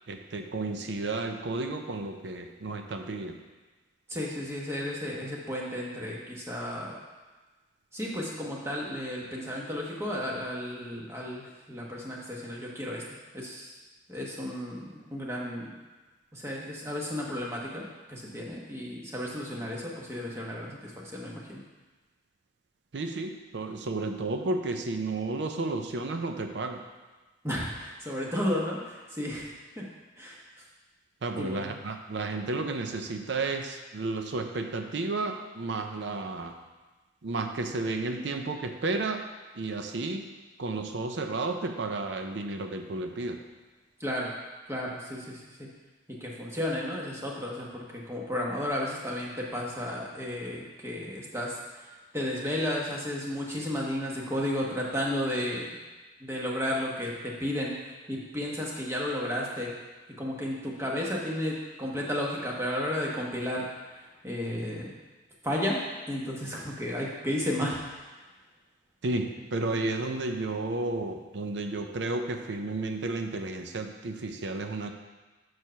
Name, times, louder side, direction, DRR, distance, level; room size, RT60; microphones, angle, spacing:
voice 1, 0.1-3.4 22.9-26.8 31.2-36.5 37.2-39.3 39.5-40.3 40.6-43.4 69.0-74.9, right 3 dB, 70° right, 5 dB, 0.5 m, -32 dB
voice 2, 4.1-6.9 7.9-13.0 13.3-13.7 14.1-15.7 16.3-21.6 27.4-29.8 30.2-30.4 31.4-31.8 44.0-44.3 44.7-45.7 46.2-51.9 52.1-55.6 56.2-59.7 60.2-64.9 65.4-65.8 66.1-68.1 69.7-69.8, left 1 dB, 15° right, -3 dB, 1.1 m, -33 dB
6.4 x 4.6 x 5.6 m, 1.3 s
head